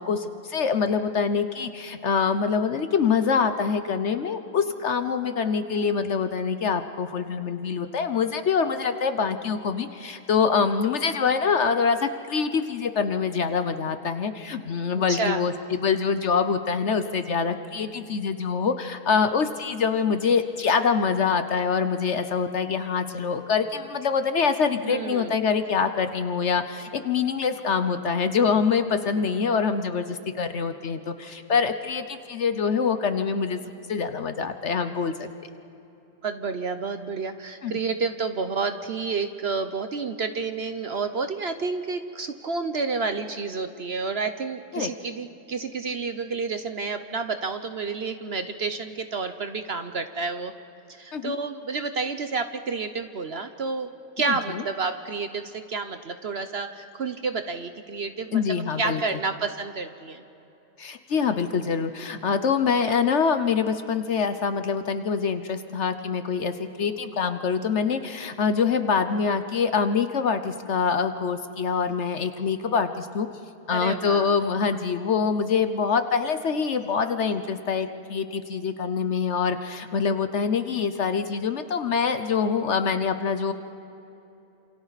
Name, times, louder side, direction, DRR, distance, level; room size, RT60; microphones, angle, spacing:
voice 1, 0.0-33.6 33.9-35.3 37.6-37.7 44.7-44.9 51.1-51.3 54.3-54.6 58.3-59.2 60.8-73.3 73.7-83.5, left 6 dB, 55° left, 9 dB, 1.0 m, -25 dB
voice 2, 24.8-25.3 36.2-50.5 51.0-53.9 54.2-60.2 73.7-74.3, right 4 dB, 50° right, 8 dB, 0.9 m, -30 dB
28.5 x 27.0 x 4.1 m, 2.9 s
omnidirectional pair, 1.6 m